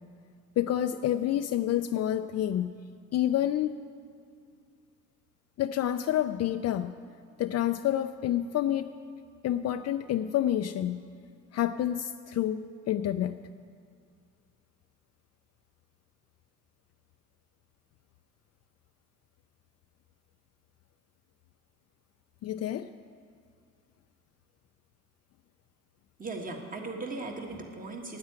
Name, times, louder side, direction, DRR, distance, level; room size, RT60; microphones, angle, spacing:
voice 1, 0.6-2.7 3.1-3.8 5.6-6.9 7.4-8.9 9.4-11.0 11.5-13.4 22.4-22.9, left 11 dB, 55° left, 8 dB, 0.4 m, -28 dB
voice 2, 26.2-28.2, right 3 dB, 30° right, 2 dB, 1.7 m, -38 dB
9.6 x 8.5 x 8.9 m, 2.2 s
cardioid pair, 90°, 30 cm